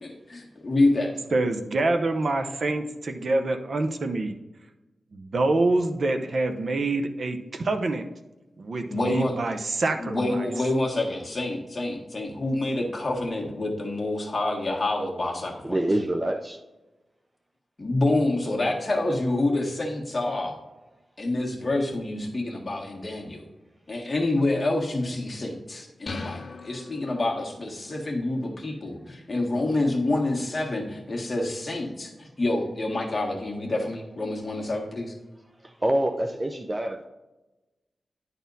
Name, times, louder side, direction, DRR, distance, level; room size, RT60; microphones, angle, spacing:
voice 1, 0.0-1.1 8.9-9.4 10.0-15.8 17.8-20.6 21.2-23.4 23.9-35.1, left 2 dB, 30° left, -1 dB, 1.6 m, -27 dB
voice 2, 1.3-4.4 5.1-8.1 8.6-10.5, right 2 dB, 55° right, 7 dB, 0.7 m, -26 dB
voice 3, 15.6-16.6 35.6-37.1, right 1 dB, 20° right, 4 dB, 0.5 m, -26 dB
sound 1, 26.1-27.7, left 4 dB, 50° left, 0.4 m, -39 dB
10.5 x 4.2 x 4.0 m, 1.1 s
wide cardioid pair, 110°, 0 cm